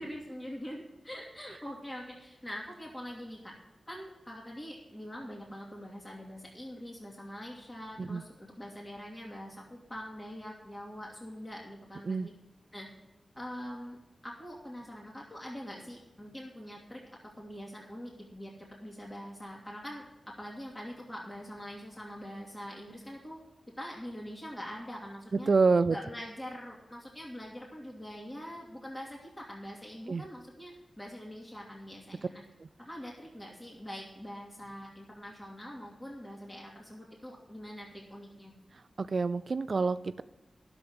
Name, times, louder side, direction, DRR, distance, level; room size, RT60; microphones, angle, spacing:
voice 1, 0.0-3.5 3.9-12.3 12.7-12.9 13.3-14.0 14.2-17.0 17.4-23.4 23.8-25.5 25.9-32.4 32.8-38.5, equal, 20° left, -3 dB, 2.9 m, -44 dB
voice 2, 25.5-26.0 30.1-30.2 39.0-40.2, right 4 dB, 60° right, 12 dB, 0.4 m, -27 dB
11.5 x 7.1 x 7.9 m, 0.99 s
wide cardioid pair, 80°, 0 cm